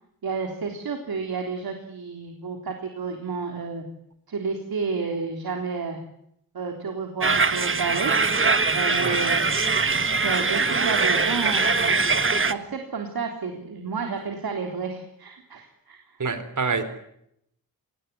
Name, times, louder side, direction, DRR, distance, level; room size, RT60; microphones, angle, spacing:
voice 1, 0.2-3.8 4.3-6.0 6.5-8.1 8.7-9.5 10.2-12.1 12.5-16.0, right 5 dB, 80° right, 3 dB, 3.7 m, -31 dB
sound 1, 7.2-12.5, right 4 dB, 35° right, 1.5 m, -22 dB
voice 2, 16.2-16.8, right 4 dB, 55° right, 11 dB, 4.1 m, -26 dB
26.5 x 19.0 x 9.8 m, 0.76 s
wide cardioid pair, 130°, 36 cm